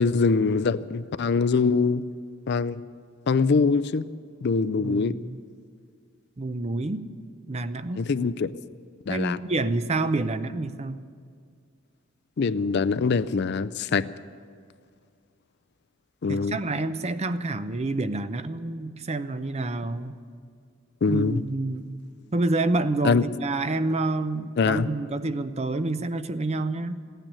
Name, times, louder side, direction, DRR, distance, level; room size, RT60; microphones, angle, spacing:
voice 1, 0.0-2.0 2.5-2.8 3.3-4.0 4.4-5.2 8.0-8.5 9.1-9.4 12.4-14.1 16.2-16.6 21.0-21.4 23.0-23.2 24.6-24.9, left 4 dB, 55° left, 0.4 m, -23 dB
voice 2, 4.8-5.4 6.4-7.1 7.5-8.1 9.1-11.0 16.3-20.2 21.1-22.0 22.3-27.0, right 2 dB, 30° right, 0.6 m, -28 dB
15.5 x 9.1 x 9.9 m
head